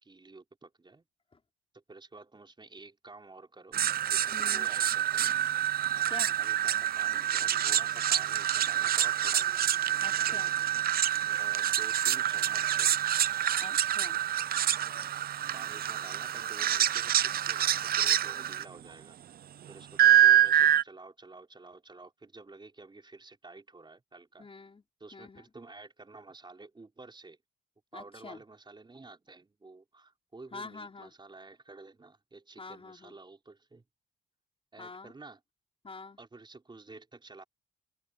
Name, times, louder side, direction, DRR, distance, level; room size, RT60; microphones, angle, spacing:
voice 1, 0.0-1.0 1.7-3.8 4.1-5.3 5.9-9.6 10.2-10.4 11.3-13.0 15.5-19.2 19.7-24.5 25.0-27.4 27.9-33.8 34.7-35.4 36.2-37.4, right 3 dB, 25° right, 4.9 m, -51 dB
sound 1, 3.7-18.6 20.0-20.8, right 11 dB, 50° right, 0.5 m, -26 dB
voice 2, 4.3-4.7 6.1-6.4 10.0-10.5 13.6-14.2 24.4-24.8 25.1-25.4 27.9-28.4 30.5-31.1 32.6-33.2 34.8-35.1 35.8-36.2, left 4 dB, 30° left, 5.4 m, -46 dB
open air
cardioid pair, 90°, 20 cm